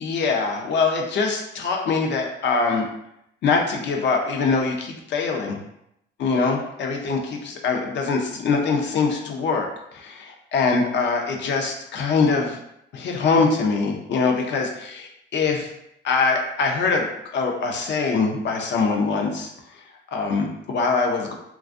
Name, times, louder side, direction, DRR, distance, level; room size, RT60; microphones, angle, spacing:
voice 1, 0.0-2.8 3.4-5.6 6.2-12.6 12.9-15.7 16.0-19.5 20.1-21.3, left 4 dB, 65° left, 2 dB, 0.5 m, -23 dB
2.5 x 2.3 x 2.4 m, 0.78 s
cardioid pair, 90°, 20 cm